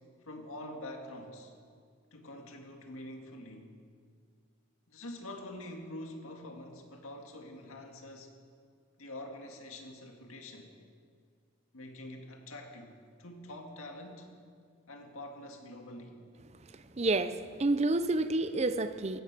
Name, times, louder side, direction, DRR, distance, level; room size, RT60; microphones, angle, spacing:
voice 1, 0.2-1.5 2.1-3.8 4.9-8.3 9.0-10.7 11.7-14.3 14.9-16.2, left 1 dB, 85° left, 3 dB, 2.0 m, -45 dB
voice 2, 16.7-19.2, right 2 dB, 30° right, 11 dB, 0.5 m, -29 dB
15.5 x 13.0 x 6.1 m, 2.1 s
head